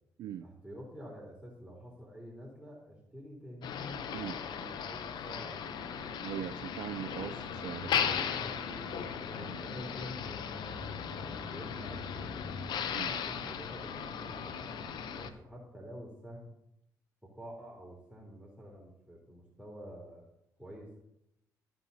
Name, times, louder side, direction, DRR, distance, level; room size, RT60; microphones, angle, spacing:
voice 1, 0.4-3.8 4.4-6.2 8.1-12.4 13.0-16.5 17.2-20.3 20.6-21.0, equal, 5° right, -3 dB, 3.3 m, -49 dB
Motor vehicle (road), 3.6-15.3, left 7 dB, 70° left, 0.7 m, -37 dB
voice 2, 6.2-8.2 12.9-13.1, right 10 dB, 70° right, 9 dB, 0.4 m, -40 dB
14.0 x 5.7 x 2.8 m, 0.83 s
supercardioid pair, 55°, 8 cm